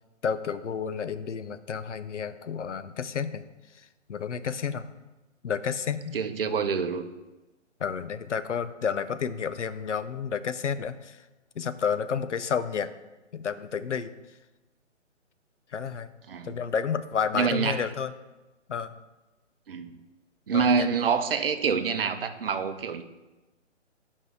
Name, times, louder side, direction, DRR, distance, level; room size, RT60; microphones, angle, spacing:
voice 1, 0.2-3.4 3.7-4.9 5.4-6.2 7.8-11.2 11.6-12.9 13.3-14.1 15.7-16.1 16.4-18.1 18.7-18.9 20.5-20.9, left 7 dB, 70° left, 13 dB, 0.6 m, -31 dB
voice 2, 6.1-7.1 16.3-16.5 17.3-17.8 19.7-20.0 20.5-23.0, right 5 dB, 50° right, 9 dB, 0.7 m, -26 dB
10.5 x 5.4 x 3.3 m, 1.1 s
figure-of-eight pair, 140°, 37 cm